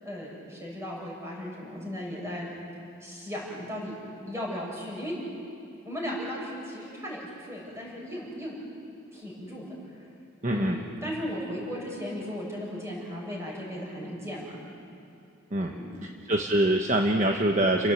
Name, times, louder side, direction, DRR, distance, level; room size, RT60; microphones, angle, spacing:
voice 1, 0.0-2.5 3.0-4.0 4.3-5.2 5.8-8.5 9.1-10.1 10.5-14.5 15.6-16.1 17.2-17.3, equal, 15° right, -4 dB, 7.1 m, -36 dB
voice 2, 10.4-10.8 15.5-15.7 16.3-17.9, right 1 dB, 40° right, 2 dB, 1.1 m, -24 dB
30.0 x 17.0 x 8.4 m, 2.7 s
head